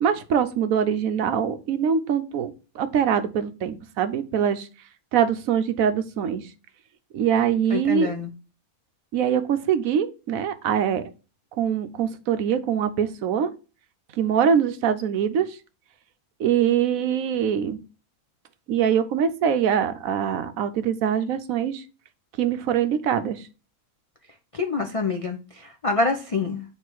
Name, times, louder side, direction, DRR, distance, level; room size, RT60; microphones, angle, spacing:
voice 1, 0.0-4.7 5.1-6.4 7.1-8.1 9.1-11.0 11.6-13.5 14.2-15.6 16.4-17.8 18.7-21.8 22.4-23.4, right 8 dB, 70° right, 10 dB, 1.1 m, -23 dB
voice 2, 7.7-8.3 24.5-26.6, left 4 dB, 50° left, 3 dB, 0.4 m, -26 dB
6.5 x 3.3 x 4.5 m, 0.33 s
omnidirectional pair, 1.5 m